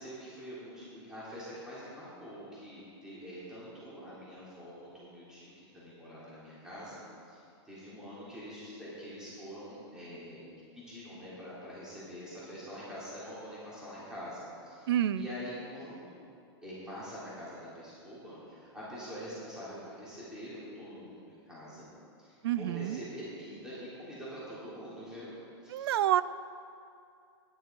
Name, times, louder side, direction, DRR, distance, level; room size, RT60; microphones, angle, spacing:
voice 1, 0.0-7.0 7.3-10.4 10.7-16.3 16.6-21.9 22.2-25.9, equal, 5° right, -10 dB, 3.3 m, -45 dB
voice 2, 14.9-15.3 22.4-23.0 25.7-26.2, right 11 dB, 60° right, 16 dB, 0.4 m, -28 dB
12.0 x 10.5 x 4.6 m, 2.4 s
hypercardioid pair, 155°, 15 cm